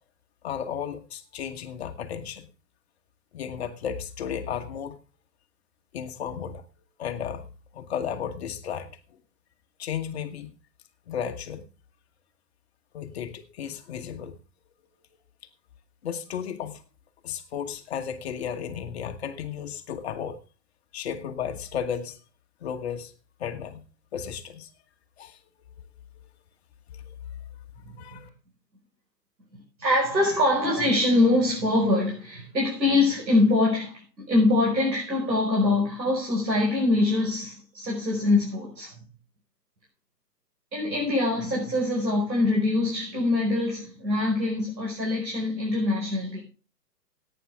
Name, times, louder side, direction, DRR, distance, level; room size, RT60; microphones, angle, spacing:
voice 1, 0.4-2.5 3.3-5.0 5.9-6.6 7.0-7.5 7.7-9.0 9.8-10.5 11.1-11.7 12.9-14.4 16.0-16.8 17.2-20.4 20.9-22.2 22.6-23.1 23.4-23.8 24.1-24.7 25.2-25.4 25.8-25.9 26.9-27.1 28.0-28.3, left 8 dB, 40° left, 1.4 m, -34 dB
voice 2, 29.8-38.9 40.7-46.4, left 2 dB, 90° right, 5.0 m, -24 dB
17.5 x 9.2 x 3.5 m
hypercardioid pair, 140°, 50 cm